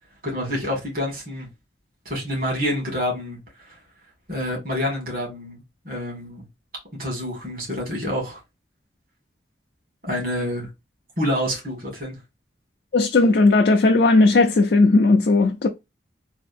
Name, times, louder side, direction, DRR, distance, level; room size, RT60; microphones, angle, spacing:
voice 1, 0.2-1.5 2.1-3.4 4.3-6.5 7.0-8.4 10.0-10.7 11.2-12.2, left 1 dB, 50° right, 1.8 m, -27 dB
voice 2, 12.9-15.7, left 3 dB, 60° left, 0.4 m, -16 dB
3.5 x 2.6 x 2.5 m
head